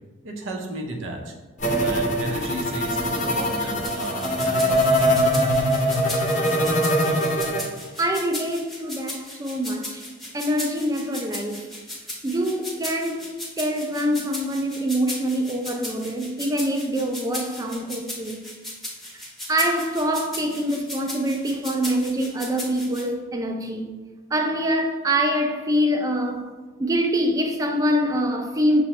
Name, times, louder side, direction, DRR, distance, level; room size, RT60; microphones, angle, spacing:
voice 1, 0.2-1.3 1.6-5.4, right 1 dB, 80° right, 0.6 m, -33 dB
sound 1, 1.6-7.6, equal, 40° left, 0.5 m, -22 dB
sound 2, 3.8-23.0, left 1 dB, ahead, 0.7 m, -36 dB
voice 2, 8.0-10.0 10.3-11.7 12.2-13.3 13.6-18.4 19.5-23.9 24.3-26.5 26.8-28.8, equal, 20° right, 0.3 m, -25 dB
5.8 x 2.0 x 2.8 m
head